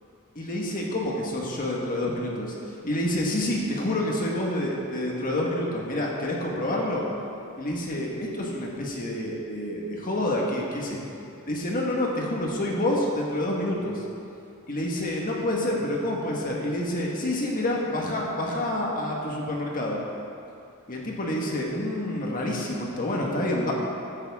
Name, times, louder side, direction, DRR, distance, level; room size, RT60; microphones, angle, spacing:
voice 1, 0.3-2.5 2.8-7.0 7.6-11.2 11.5-14.0 14.7-20.0 20.9-23.7, left 1 dB, 40° left, -2 dB, 1.6 m, -28 dB
16.0 x 8.8 x 3.7 m, 2.6 s
head